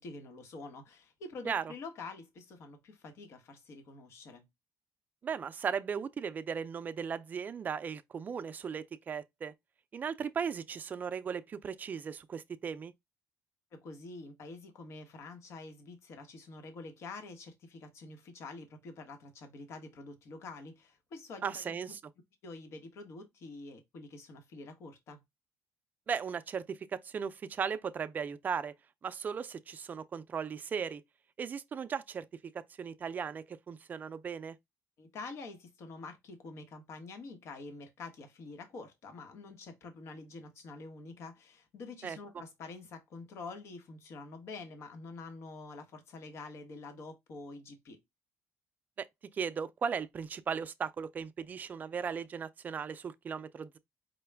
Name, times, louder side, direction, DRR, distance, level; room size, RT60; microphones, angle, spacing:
voice 1, 0.0-4.4 13.7-21.8 22.4-25.2 35.0-48.0, left 3 dB, 60° left, 1.1 m, -47 dB
voice 2, 5.2-9.5 9.9-12.9 21.4-22.0 26.1-28.7 29.0-31.0 31.4-32.2 32.5-34.6 42.0-42.2 49.0-49.1 49.3-53.8, right 6 dB, 35° right, 0.4 m, -37 dB
5.1 x 2.2 x 3.3 m
cardioid pair, 130°, 5 cm